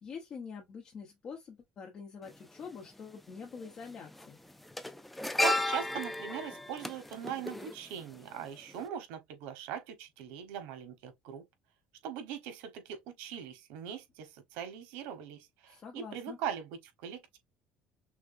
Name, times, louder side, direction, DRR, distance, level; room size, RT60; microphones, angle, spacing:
voice 1, 0.0-4.4 15.7-16.4, left 5 dB, 35° left, 0.9 m, -45 dB
sound 1, 2.3-2.4 3.6-3.8 4.1-8.4 8.7-8.9, left 2 dB, 5° left, 0.4 m, -34 dB
voice 2, 5.4-11.4 12.0-17.4, right 9 dB, 90° right, 1.0 m, -40 dB
6.0 x 2.2 x 2.5 m
cardioid pair, 155°, 3 cm